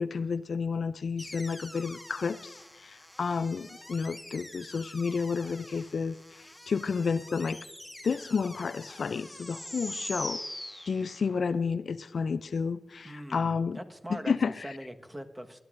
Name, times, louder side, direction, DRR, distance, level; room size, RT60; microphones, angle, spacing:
voice 1, 0.0-2.5 2.8-6.2 6.7-7.6 8.0-10.4 10.9-13.8 14.1-14.7, left 5 dB, 80° left, 0.3 m, -31 dB
sound 1, 1.2-11.5, left 1 dB, 5° left, 1.3 m, -44 dB
voice 2, 13.0-14.3 14.6-15.6, equal, 15° right, 1.3 m, -42 dB
25.0 x 11.0 x 2.5 m
cardioid pair, 45°, 0 cm